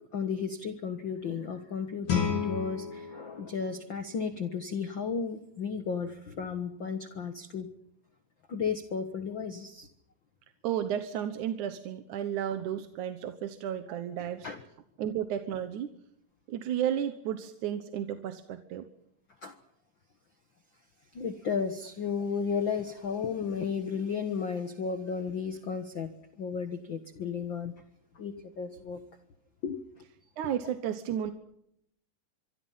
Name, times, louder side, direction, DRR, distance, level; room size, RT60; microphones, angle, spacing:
voice 1, 0.1-7.7 8.5-9.9 14.2-14.6 19.4-19.6 21.1-27.7 28.1-29.0 29.6-30.1, left 6 dB, 50° left, 8 dB, 1.4 m, -34 dB
Guitar, 2.1-4.8, left 6 dB, 80° left, 5.1 m, -34 dB
voice 2, 10.6-14.5 15.0-15.9 16.5-18.9 30.4-31.3, right 10 dB, 65° right, 9 dB, 2.4 m, -33 dB
25.5 x 24.5 x 5.7 m, 0.76 s
omnidirectional pair, 4.0 m